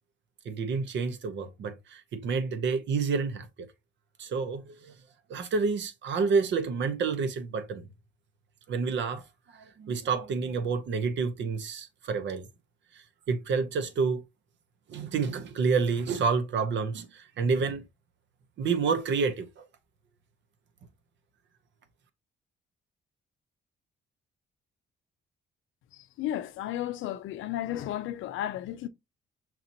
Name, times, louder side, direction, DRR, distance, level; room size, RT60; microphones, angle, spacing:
voice 1, 0.4-3.7 4.2-4.9 5.3-7.8 8.7-9.2 9.5-12.5 13.3-14.2 14.9-17.8 18.6-19.6, right 5 dB, 65° right, 0.8 m, -29 dB
voice 2, 25.9-28.9, left 12 dB, 80° left, 0.5 m, -33 dB
5.8 x 2.9 x 2.6 m
cardioid pair, 90°, 20 cm